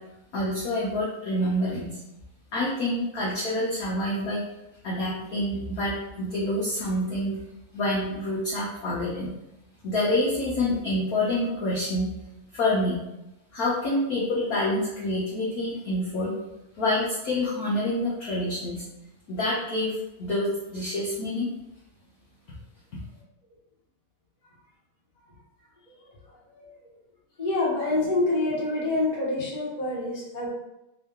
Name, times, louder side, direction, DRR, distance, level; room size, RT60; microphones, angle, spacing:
voice 1, 0.3-2.0 2.5-4.4 4.8-7.3 7.7-9.3 9.8-12.1 12.5-13.0 13.5-16.3 16.8-18.8 19.3-21.5, left 1 dB, 60° left, -6 dB, 1.0 m, -27 dB
voice 2, 27.4-30.5, left 2 dB, 25° left, -6 dB, 0.9 m, -26 dB
3.7 x 2.7 x 3.5 m, 0.92 s
omnidirectional pair, 2.4 m